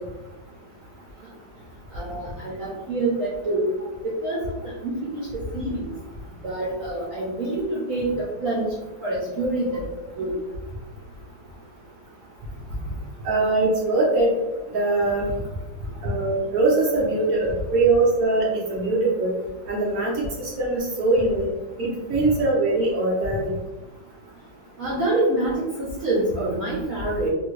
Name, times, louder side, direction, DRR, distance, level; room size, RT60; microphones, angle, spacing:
voice 1, 1.9-3.7 4.2-4.4 4.8-5.2 5.5-5.7 6.4-8.7 9.0-9.8 10.2-10.3 24.8-27.3, right 2 dB, 85° right, -6 dB, 0.7 m, -26 dB
voice 2, 13.2-14.3 14.7-15.3 16.0-19.3 19.7-21.5 21.8-23.5, right 2 dB, 55° right, -4 dB, 1.1 m, -22 dB
3.4 x 2.3 x 3.1 m, 1.1 s
omnidirectional pair, 2.3 m